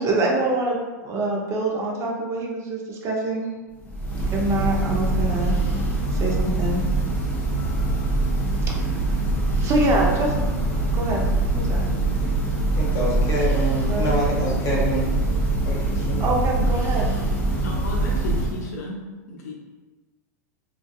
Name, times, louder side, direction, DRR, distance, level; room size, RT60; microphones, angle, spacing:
voice 1, 0.0-3.5 4.3-5.6 6.1-6.8 8.6-9.2 9.6-10.3 10.9-11.3 11.5-11.8 13.9-14.1 16.2-17.2, right 2 dB, 35° right, -1 dB, 0.5 m, -25 dB
Church bell, 3.8-18.8, right 2 dB, 20° left, 0.5 m, -23 dB
voice 2, 12.7-15.1 15.6-16.3, equal, 35° left, -4 dB, 0.9 m, -26 dB
voice 3, 17.6-19.5, left 1 dB, 70° left, -1 dB, 0.5 m, -34 dB
2.5 x 2.2 x 2.2 m, 1.2 s
hypercardioid pair, 110°, 9 cm